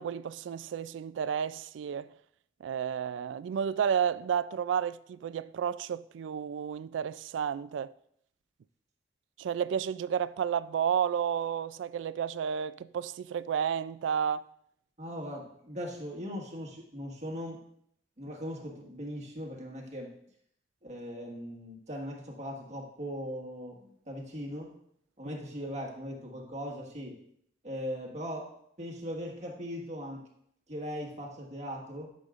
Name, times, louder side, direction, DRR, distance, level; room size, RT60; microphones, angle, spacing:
voice 1, 0.0-2.1 2.6-7.9 9.4-14.4 25.2-25.3, right 8 dB, 85° right, 0.3 m, -31 dB
voice 2, 15.0-17.6 18.2-20.1 20.8-24.7 25.2-27.2 27.6-28.5 28.8-30.3 30.7-32.1, equal, 40° right, 1.6 m, -39 dB
12.0 x 6.4 x 2.5 m
head